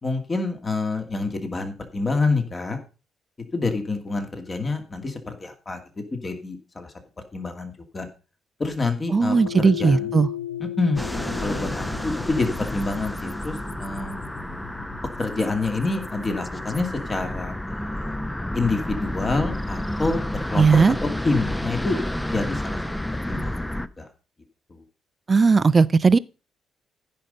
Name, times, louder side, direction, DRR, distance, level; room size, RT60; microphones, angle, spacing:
voice 1, 0.0-2.8 3.5-5.8 6.1-6.9 7.3-8.1 8.6-10.1 10.6-11.0 11.4-14.2 15.2-18.2 18.5-22.0 22.3-22.8 23.3-24.1 24.7-24.8, left 3 dB, 35° left, 2.4 m, -27 dB
voice 2, 9.1-10.3 20.5-20.9 25.3-26.2, right 4 dB, 35° right, 0.5 m, -17 dB
sound 1, 9.3-17.7, left 11 dB, 90° left, 0.5 m, -37 dB
sound 2, 11.0-23.9, left 1 dB, 10° left, 0.8 m, -30 dB
15.0 x 5.5 x 5.2 m
figure-of-eight pair, 40°, 0 cm